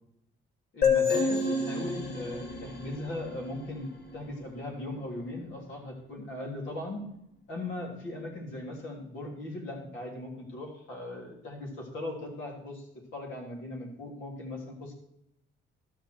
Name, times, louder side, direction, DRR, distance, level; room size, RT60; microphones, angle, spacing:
voice 1, 0.7-7.0 7.5-12.9 13.1-14.9, left 1 dB, 75° left, -1 dB, 3.4 m, -39 dB
sound 1, 0.8-4.4, left 4 dB, 55° left, 1.9 m, -29 dB
12.5 x 7.1 x 4.7 m, 0.79 s
cardioid pair, 90°, 20 cm